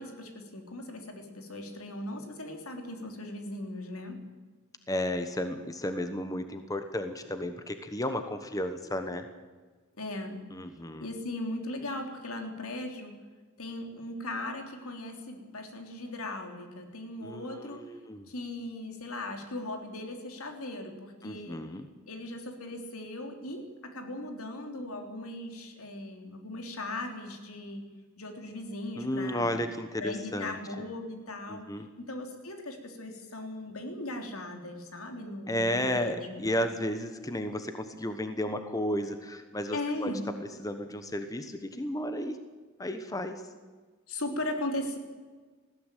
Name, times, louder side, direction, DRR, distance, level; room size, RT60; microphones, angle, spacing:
voice 1, 0.0-4.2 10.0-10.4 11.0-13.1 13.6-17.8 18.3-21.6 22.1-27.9 28.2-29.6 30.0-31.7 32.0-36.5 39.7-40.2 44.1-45.0, left 1 dB, 85° left, 4 dB, 3.5 m, -38 dB
voice 2, 4.9-9.3 10.5-11.1 17.2-18.3 21.2-21.9 29.0-30.6 31.5-31.9 35.5-40.1 40.4-42.4 42.8-43.5, left 1 dB, 15° left, 8 dB, 1.1 m, -33 dB
19.5 x 15.5 x 9.2 m, 1.4 s
head